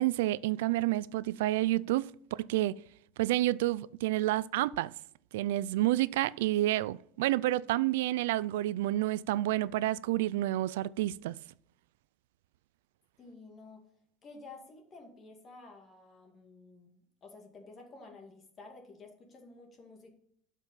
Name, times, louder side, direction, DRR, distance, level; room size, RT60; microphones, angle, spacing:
voice 1, 0.0-2.7 3.2-4.9 5.3-11.4, right 15 dB, 90° right, 0.4 m, -29 dB
voice 2, 13.2-13.8 14.2-20.1, left 3 dB, 20° left, 2.3 m, -52 dB
12.0 x 5.5 x 5.7 m
cardioid pair, 170°, 0 cm